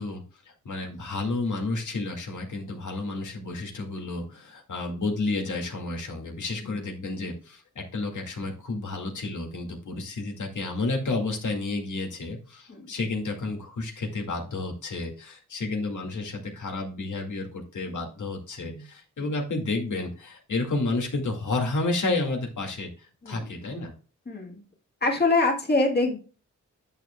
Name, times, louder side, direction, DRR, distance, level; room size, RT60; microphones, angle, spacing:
voice 1, 0.0-23.9, left 2 dB, 75° left, 2 dB, 2.1 m, -31 dB
voice 2, 23.2-23.7 24.3-24.6 25.0-26.2, left 3 dB, 35° left, 1 dB, 1.9 m, -25 dB
10.5 x 6.9 x 2.3 m, 0.35 s
wide cardioid pair, 100°, 30 cm